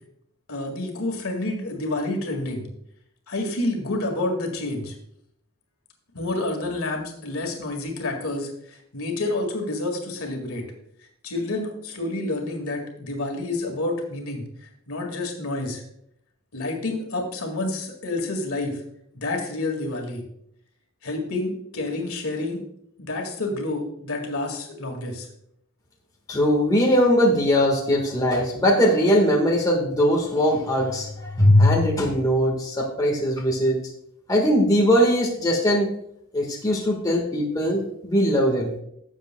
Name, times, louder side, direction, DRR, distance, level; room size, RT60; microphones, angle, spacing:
voice 1, 0.5-2.7 3.3-4.9 6.1-10.6 11.2-15.8 16.5-18.8 19.1-20.2 21.0-22.6 23.0-25.3, left 2 dB, 75° left, 2 dB, 2.0 m, -29 dB
voice 2, 26.3-33.8 34.3-35.9 36.3-38.7, equal, 15° left, -1 dB, 1.5 m, -20 dB
16.0 x 7.3 x 2.2 m, 0.74 s
head